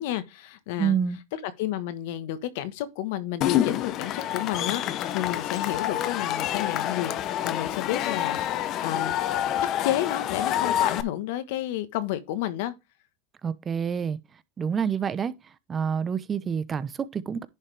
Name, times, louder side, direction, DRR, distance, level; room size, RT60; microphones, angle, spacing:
voice 1, 0.0-1.0 1.3-7.1 7.4-9.2 9.8-12.7, left 12 dB, 70° left, 1.4 m, -31 dB
voice 2, 0.8-1.2 13.4-14.2 14.6-15.3 15.7-17.5, right 7 dB, 25° right, 0.8 m, -27 dB
Cheering / Crowd, 3.4-11.0, left 11 dB, 45° left, 0.9 m, -27 dB
10.5 x 5.6 x 3.4 m
supercardioid pair, 120°, 0 cm